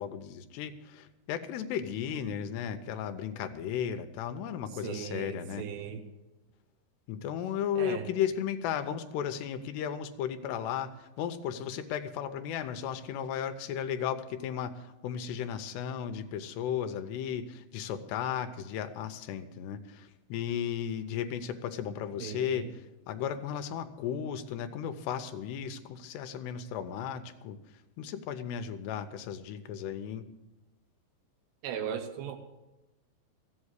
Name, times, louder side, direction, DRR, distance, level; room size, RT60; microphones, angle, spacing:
voice 1, 0.0-5.7 7.1-27.6 28.0-30.2, left 9 dB, 80° left, 9 dB, 2.9 m, -35 dB
voice 2, 4.8-6.0 7.8-8.1 22.2-22.7 31.6-32.4, right 8 dB, 90° right, 5 dB, 3.2 m, -37 dB
15.0 x 8.0 x 8.1 m, 1.0 s
omnidirectional pair, 4.8 m